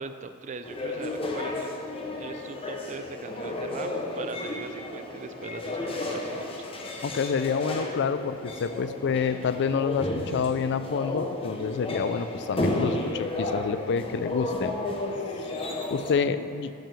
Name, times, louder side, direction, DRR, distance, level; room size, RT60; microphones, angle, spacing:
voice 1, 0.0-1.7 2.1-3.9 4.2-6.6 15.1-15.5, right 4 dB, 35° right, 10 dB, 0.4 m, -40 dB
sound 1, 0.6-16.1, left 2 dB, 25° left, 0.8 m, -32 dB
voice 2, 7.0-14.7 15.4-15.5 15.9-16.7, left 6 dB, 55° left, 12 dB, 0.4 m, -28 dB
6.8 x 6.2 x 6.8 m, 2.4 s
head